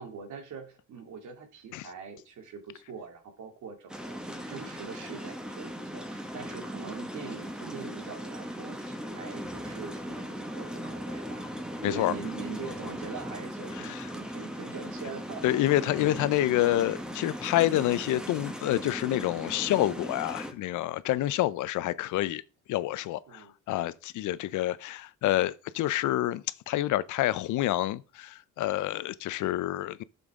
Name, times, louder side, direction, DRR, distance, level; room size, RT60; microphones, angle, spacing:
voice 1, 0.0-11.5 11.8-15.6 23.3-23.5 29.4-29.6, right 5 dB, 75° right, 2.5 m, -43 dB
sound 1, 3.9-20.5, equal, 5° right, 1.7 m, -38 dB
voice 2, 11.8-12.1 13.9-14.0 15.4-22.4 22.7-30.0, left 14 dB, 80° left, 0.6 m, -28 dB
11.0 x 7.0 x 3.7 m
cardioid pair, 90°, 30 cm